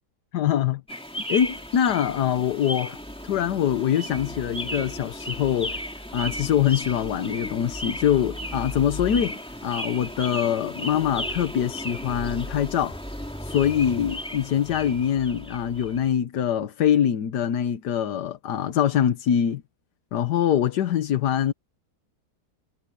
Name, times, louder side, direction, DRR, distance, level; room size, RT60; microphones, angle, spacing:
voice 1, 0.3-0.8 1.3-3.0 3.2-5.8 6.1-13.0 13.4-19.6 20.1-21.5, left 9 dB, 70° left, 1.5 m, -24 dB
sound 1, 0.9-16.1, equal, 5° left, 2.4 m, -35 dB
omnidirectional pair, 1.9 m